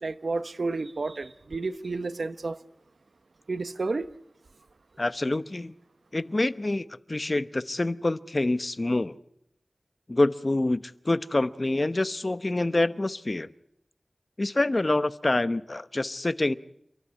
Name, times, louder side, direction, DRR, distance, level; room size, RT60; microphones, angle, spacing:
voice 1, 0.0-2.6 3.5-4.1, right 3 dB, 80° right, 1.0 m, -31 dB
voice 2, 5.0-5.7 6.1-9.2 10.1-13.5 14.4-16.5, left 2 dB, 40° left, 0.9 m, -26 dB
30.0 x 13.0 x 9.7 m
wide cardioid pair, 75°, 0 cm